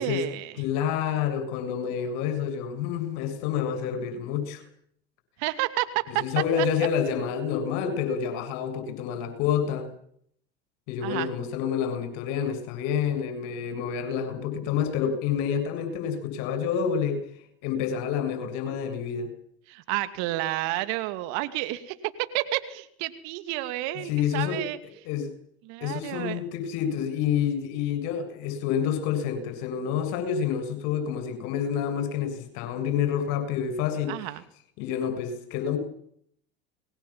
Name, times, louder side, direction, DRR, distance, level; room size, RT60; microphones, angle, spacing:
voice 1, 0.0-0.5 5.4-6.3 6.6-6.7 11.0-11.3 19.7-24.8 25.6-26.4 34.1-34.4, right 17 dB, 60° right, 11 dB, 2.6 m, -30 dB
voice 2, 0.6-4.6 6.2-9.9 10.9-17.3 17.6-19.3 24.0-24.6 25.0-25.3 25.8-34.3 34.8-35.8, left 8 dB, 60° left, 9 dB, 7.5 m, -28 dB
28.5 x 21.0 x 7.5 m, 0.66 s
hypercardioid pair, 75°, 32 cm